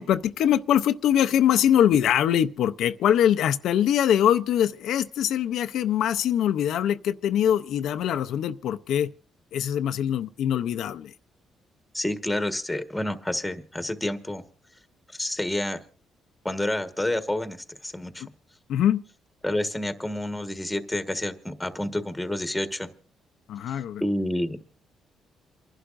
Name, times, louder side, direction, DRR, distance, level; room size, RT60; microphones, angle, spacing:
voice 1, 0.0-9.1 9.5-11.1 18.7-19.0 23.5-24.0, left 10 dB, 80° left, 0.6 m, -23 dB
voice 2, 11.9-14.4 15.1-15.8 16.4-18.2 19.4-22.9 23.7-23.8 24.0-24.6, left 1 dB, 5° left, 1.5 m, -29 dB
28.5 x 11.5 x 2.6 m
cardioid pair, 90°, 0 cm